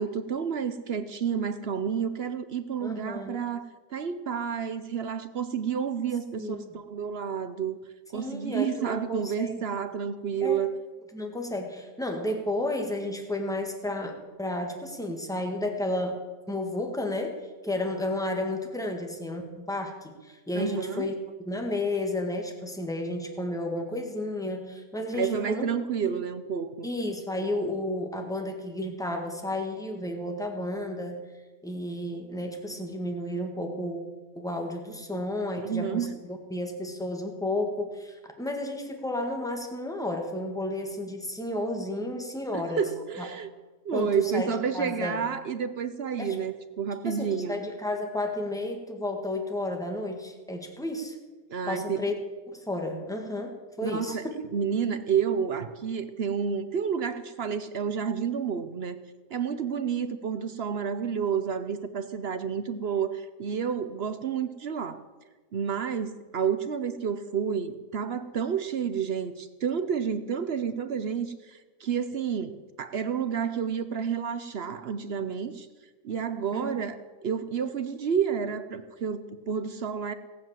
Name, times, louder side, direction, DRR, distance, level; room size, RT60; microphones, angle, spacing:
voice 1, 0.0-7.8 8.1-10.7 20.5-21.1 25.1-26.9 35.5-36.1 42.5-43.5 43.8-47.6 51.5-52.0 53.8-54.2 54.5-59.0 59.3-65.0 65.5-75.7 76.0-80.1, right 7 dB, 55° right, 11 dB, 0.7 m, -30 dB
voice 2, 2.8-3.4 6.4-6.7 8.1-9.5 10.4-10.6 11.1-16.2 16.5-17.3 17.6-21.1 21.4-25.7 26.0-26.1 26.8-31.3 31.6-42.8 43.2-43.3 43.9-45.2 46.2-46.4 47.0-51.2 51.7-52.2 52.5-54.4 76.5-76.7, left 1 dB, ahead, 3 dB, 1.7 m, -32 dB
18.0 x 7.8 x 7.5 m, 1.3 s
omnidirectional pair, 1.7 m